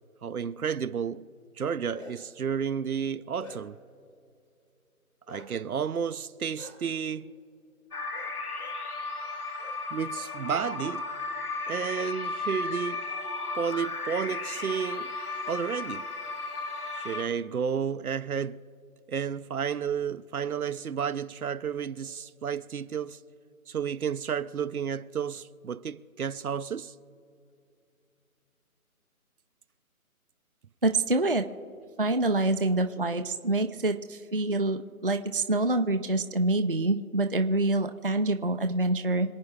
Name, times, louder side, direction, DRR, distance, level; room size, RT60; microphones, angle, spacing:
voice 1, 0.2-1.3 1.6-3.8 5.3-7.3 9.9-11.1 11.7-13.0 13.5-15.2 15.5-16.1 17.0-18.6 19.1-23.2 23.7-26.9, right 7 dB, 75° right, 0.7 m, -31 dB
Bark, 1.9-2.4 2.9-3.9 5.3-5.5 6.6-6.7 8.1-8.3 8.6-8.8 9.6-9.8 10.1-11.0, left 2 dB, 60° left, 3.2 m, -48 dB
sound 1, 7.9-17.2, left 3 dB, 85° left, 1.6 m, -35 dB
voice 2, 30.8-31.4 32.0-39.3, right 2 dB, 40° right, 0.5 m, -26 dB
27.0 x 9.2 x 3.3 m
hypercardioid pair, 175°, 44 cm